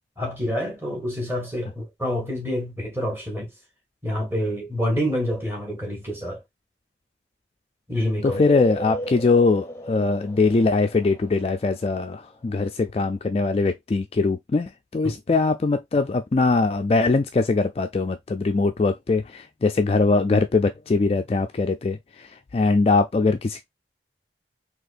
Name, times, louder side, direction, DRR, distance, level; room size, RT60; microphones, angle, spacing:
voice 1, 0.2-3.5 4.0-6.4 7.9-8.4, equal, 15° right, 1.8 m, -27 dB
voice 2, 8.2-23.7, left 3 dB, 35° left, 0.3 m, -22 dB
sound 1, 8.2-11.8, right 1 dB, 15° left, 0.7 m, -34 dB
4.1 x 2.9 x 2.5 m
head